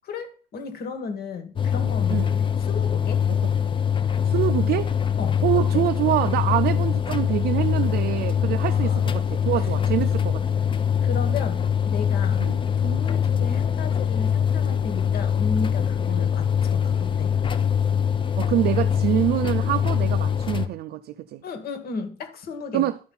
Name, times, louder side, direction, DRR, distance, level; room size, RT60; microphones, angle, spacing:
voice 1, 0.0-3.2 5.2-5.8 8.7-9.3 9.6-9.7 11.0-12.5 12.8-17.3 21.4-22.9, left 4 dB, 65° left, 1.7 m, -34 dB
sound 1, 1.6-20.7, left 8 dB, 30° left, 0.7 m, -23 dB
voice 2, 4.2-4.9 5.4-10.6 12.4-12.6 18.4-21.4 22.7-23.0, right 13 dB, 70° right, 0.5 m, -25 dB
12.0 x 4.4 x 5.6 m
cardioid pair, 110°, 17 cm